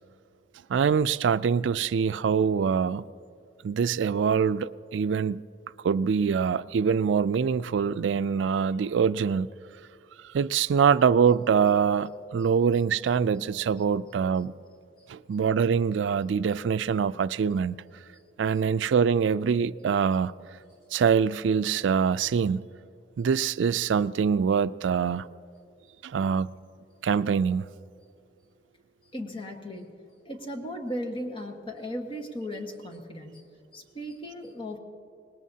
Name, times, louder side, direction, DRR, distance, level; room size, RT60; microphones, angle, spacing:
voice 1, 0.7-3.0 3.6-5.4 5.8-9.5 10.2-14.5 15.1-17.8 18.4-20.3 20.9-22.6 23.2-25.3 26.0-26.5 27.0-27.7, right 6 dB, 85° right, 0.3 m, -24 dB
voice 2, 29.1-29.9 30.2-33.4 33.7-34.8, equal, 30° left, 1.5 m, -36 dB
25.5 x 20.0 x 2.8 m
head